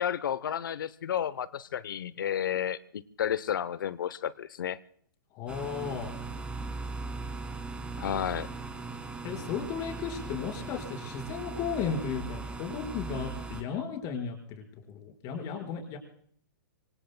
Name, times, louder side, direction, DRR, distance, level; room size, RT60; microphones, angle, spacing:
voice 1, 0.0-4.8 8.0-8.5, left 9 dB, 75° left, 0.8 m, -32 dB
voice 2, 5.3-6.2 9.2-16.0, left 6 dB, 35° left, 4.9 m, -35 dB
sound 1, 5.5-13.6, right 3 dB, 10° right, 2.3 m, -39 dB
25.5 x 25.0 x 2.2 m
hypercardioid pair, 130°, 11 cm